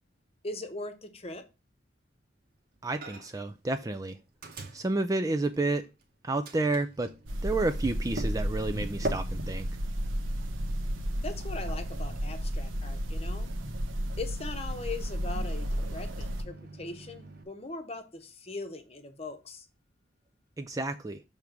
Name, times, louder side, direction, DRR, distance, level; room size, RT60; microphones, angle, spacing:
voice 1, 0.4-1.4 11.2-13.5 14.2-19.7, left 3 dB, 30° left, 0.9 m, -40 dB
voice 2, 2.8-4.2 4.7-5.9 6.2-7.1 7.4-9.7 20.6-21.2, right 2 dB, 15° right, 0.3 m, -30 dB
Microwave oven, 3.0-3.5 3.8-6.0 6.4-17.4, right 1 dB, 50° right, 1.1 m, -43 dB
sound 1, 7.3-16.4, equal, 80° right, 0.9 m, -33 dB
6.5 x 3.5 x 5.9 m
head